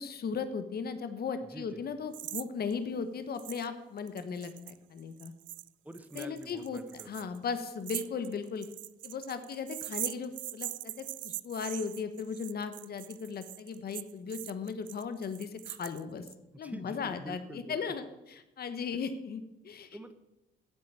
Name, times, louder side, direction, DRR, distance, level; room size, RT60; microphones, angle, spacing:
voice 1, 0.0-5.3 6.1-8.7 9.0-16.3 16.6-20.0, left 5 dB, 50° left, 10 dB, 1.2 m, -37 dB
sound 1, 2.1-2.5 2.7-2.8 3.4-3.7 4.0-16.3, right 15 dB, 75° right, 0.4 m, -42 dB
voice 2, 5.8-7.3 16.6-17.8 19.9-20.1, right 1 dB, 5° right, 9 dB, 1.2 m, -46 dB
9.4 x 7.7 x 8.9 m, 0.95 s
cardioid pair, 90°, 20 cm